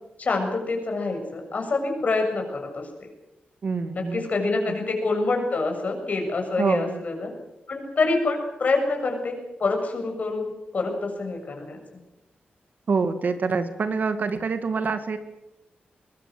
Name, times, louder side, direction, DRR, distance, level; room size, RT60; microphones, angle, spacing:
voice 1, 0.2-2.9 3.9-7.3 7.7-12.0, left 3 dB, 45° left, 3 dB, 7.2 m, -26 dB
voice 2, 3.6-4.2 6.6-7.0 12.9-15.2, right 4 dB, 55° right, 9 dB, 2.1 m, -25 dB
23.5 x 22.0 x 7.8 m, 0.92 s
wide cardioid pair, 130°, 4 cm